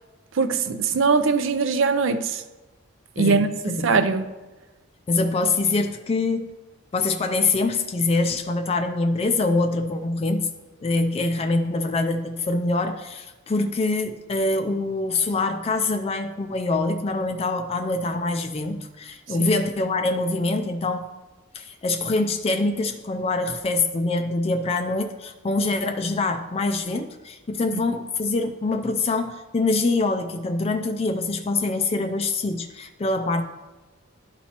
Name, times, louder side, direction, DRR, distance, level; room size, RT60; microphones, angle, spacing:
voice 1, 0.3-2.4 3.2-3.5 3.8-4.2 19.4-19.5, right 4 dB, 65° right, 0.5 m, -21 dB
voice 2, 3.2-3.9 5.1-6.5 6.9-10.5 10.8-21.1 21.5-33.4, left 3 dB, 30° left, 0.3 m, -24 dB
12.0 x 4.3 x 2.9 m
head